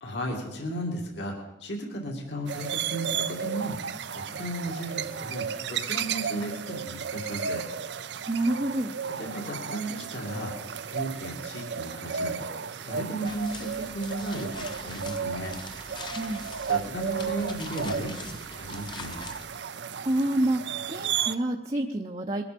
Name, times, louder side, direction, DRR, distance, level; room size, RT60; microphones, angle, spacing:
voice 1, 0.0-3.7 4.1-7.6 9.2-10.5 10.9-12.5 12.9-15.6 16.7-19.2, right 1 dB, 70° left, 1 dB, 2.5 m, -35 dB
sound 1, 2.5-21.4, right 7 dB, 70° right, 0.6 m, -34 dB
voice 2, 8.3-9.0 16.1-16.5 20.0-22.5, right 1 dB, 30° right, 2 dB, 0.7 m, -28 dB
sound 2, 13.3-19.5, left 3 dB, 25° left, 0.9 m, -43 dB
21.0 x 11.5 x 5.3 m, 0.94 s
head